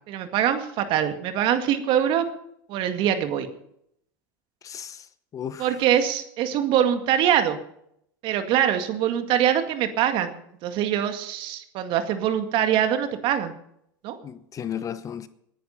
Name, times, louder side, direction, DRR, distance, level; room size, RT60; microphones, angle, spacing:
voice 1, 0.1-2.2 2.7-3.5 5.6-7.6 8.2-10.3 10.6-13.5 14.0-14.2, right 10 dB, 50° right, 2.1 m, -23 dB
voice 2, 4.6-5.1 5.3-5.7 14.2-15.3, left 9 dB, 30° left, 1.0 m, -34 dB
19.5 x 10.5 x 5.7 m
hypercardioid pair, 105°, 11 cm